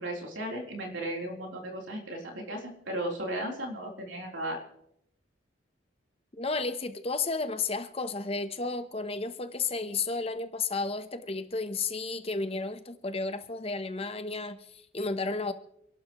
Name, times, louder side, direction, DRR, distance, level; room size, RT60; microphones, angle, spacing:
voice 1, 0.0-4.6, right 1 dB, 70° right, 3.7 m, -35 dB
voice 2, 6.4-15.5, left 3 dB, 30° left, 0.9 m, -32 dB
29.0 x 12.0 x 3.1 m
head